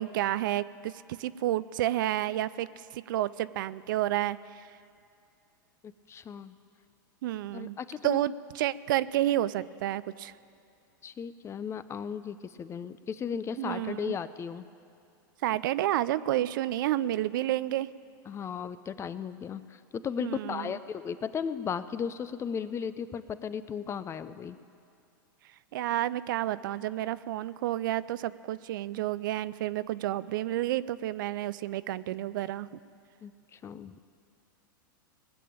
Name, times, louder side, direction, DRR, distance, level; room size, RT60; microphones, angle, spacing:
voice 1, 0.0-4.7 7.2-7.8 8.0-10.3 13.6-14.2 15.4-17.9 20.2-20.8 25.7-32.8, right 14 dB, 70° right, 16 dB, 0.4 m, -30 dB
voice 2, 5.8-6.6 7.5-8.2 11.0-14.6 18.3-24.6 33.2-34.0, left 7 dB, 25° left, 13 dB, 0.6 m, -36 dB
19.5 x 6.8 x 8.8 m, 2.5 s
hypercardioid pair, 110°, 11 cm